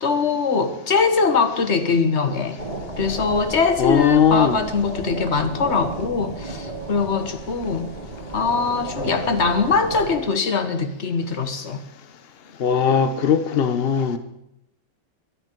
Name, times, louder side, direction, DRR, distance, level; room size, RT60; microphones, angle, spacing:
voice 1, 0.0-2.6 3.0-7.9 8.3-11.8, left 4 dB, 40° left, 1.3 m, -22 dB
sound 1, 2.6-10.2, right 2 dB, 20° right, 2.5 m, -33 dB
voice 2, 3.8-4.6 12.6-14.2, left 7 dB, 65° left, 0.6 m, -19 dB
22.0 x 10.0 x 4.5 m
omnidirectional pair, 2.2 m